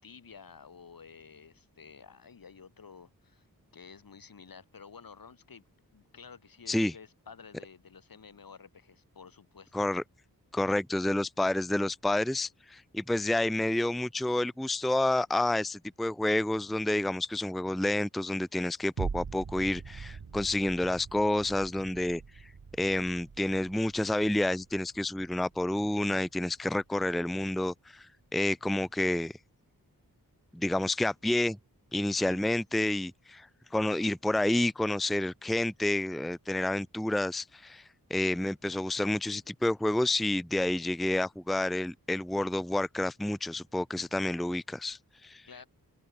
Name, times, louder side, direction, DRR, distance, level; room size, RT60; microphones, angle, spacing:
voice 1, 0.0-3.5 3.7-5.7 5.9-9.8 32.2-32.4 45.4-45.7, left 6 dB, 70° left, 3.2 m, -51 dB
voice 2, 10.5-22.5 22.8-29.4 30.5-31.6 31.9-37.8 38.1-45.5, left 1 dB, ahead, 0.6 m, -29 dB
sound 1, 19.0-27.5 28.0-28.1, right 5 dB, 65° right, 5.2 m, -43 dB
open air
wide cardioid pair, 120°, 36 cm